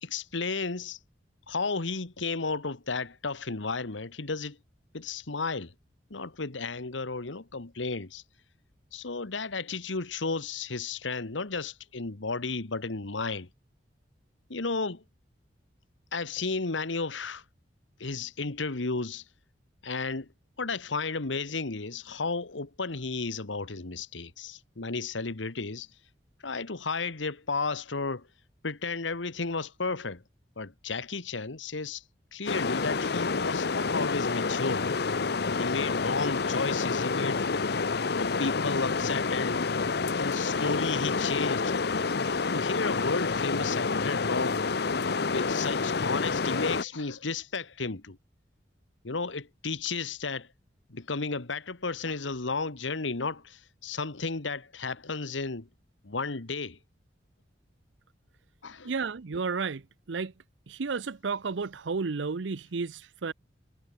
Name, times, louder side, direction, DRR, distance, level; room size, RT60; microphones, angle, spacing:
voice 1, 0.0-1.0 1.5-4.6 4.9-5.7 6.1-8.2 8.9-13.5 14.5-15.0 16.1-17.4 18.0-19.2 19.8-20.3 20.6-25.9 26.4-28.3 28.6-30.2 30.6-32.0 32.3-34.9 35.6-37.4 38.1-39.7 40.2-41.7 42.5-44.6 45.3-48.2 49.0-50.5 50.9-55.7 56.0-56.8 58.6-58.9, left 4 dB, 90° left, 1.4 m, -33 dB
sound 1, 32.5-46.8, left 4 dB, 60° left, 0.8 m, -28 dB
voice 2, 58.8-59.8 60.1-60.3 60.7-63.3, right 4 dB, 80° right, 0.7 m, -32 dB
head